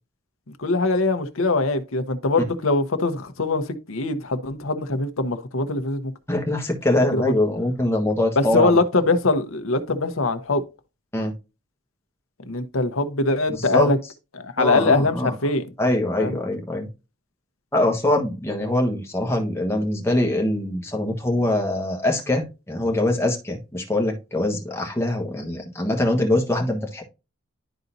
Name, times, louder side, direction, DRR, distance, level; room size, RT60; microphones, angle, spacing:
voice 1, 0.6-3.6 3.9-6.1 7.1-7.3 8.4-10.6 12.5-14.0 14.4-15.6 16.2-16.4, left 3 dB, 80° left, 0.9 m, -22 dB
voice 2, 6.3-8.8 11.1-11.3 13.5-13.9 14.6-15.3 15.8-16.9 17.7-27.0, left 1 dB, 10° left, 1.3 m, -23 dB
11.5 x 4.0 x 2.6 m
head